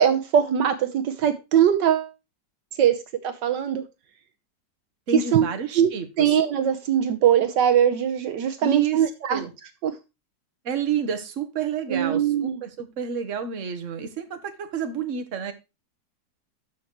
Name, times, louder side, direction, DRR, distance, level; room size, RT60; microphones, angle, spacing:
voice 1, 0.0-2.1 2.8-3.0 3.2-3.8 5.1-5.5 5.8-5.9 6.2-9.4 9.8-9.9 11.9-12.6, right 9 dB, 75° right, 10 dB, 1.4 m, -21 dB
voice 2, 5.1-6.3 8.6-9.5 10.6-15.5, right 6 dB, 45° right, 7 dB, 1.4 m, -30 dB
13.0 x 5.9 x 3.1 m, 0.25 s
omnidirectional pair, 2.0 m